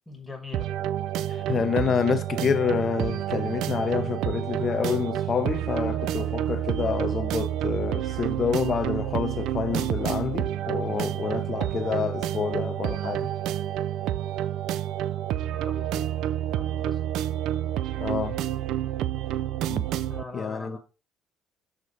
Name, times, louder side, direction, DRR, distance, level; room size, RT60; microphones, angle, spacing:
voice 1, 0.1-0.7 5.9-6.2 10.9-11.2 15.6-16.1 16.5-17.0 20.1-20.8, left 4 dB, 5° left, 1.2 m, -41 dB
sound 1, 0.5-20.2, right 12 dB, 60° right, 0.4 m, -29 dB
voice 2, 1.3-13.3 18.0-18.4 19.7-19.9 20.3-20.8, left 6 dB, 30° left, 0.7 m, -28 dB
6.5 x 4.8 x 4.0 m
cardioid pair, 170°, 0 cm